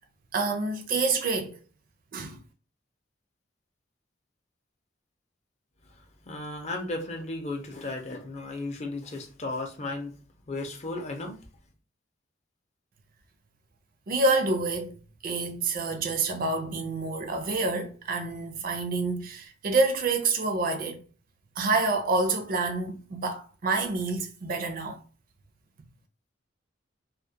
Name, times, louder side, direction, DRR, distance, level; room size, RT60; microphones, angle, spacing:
voice 1, 0.3-1.6 2.1-2.4 14.1-15.0 15.2-21.0 21.6-25.0, right 3 dB, 50° right, 0.4 m, -27 dB
voice 2, 6.3-10.1 10.5-11.4, left 2 dB, 35° left, 0.5 m, -35 dB
2.2 x 2.1 x 2.7 m
head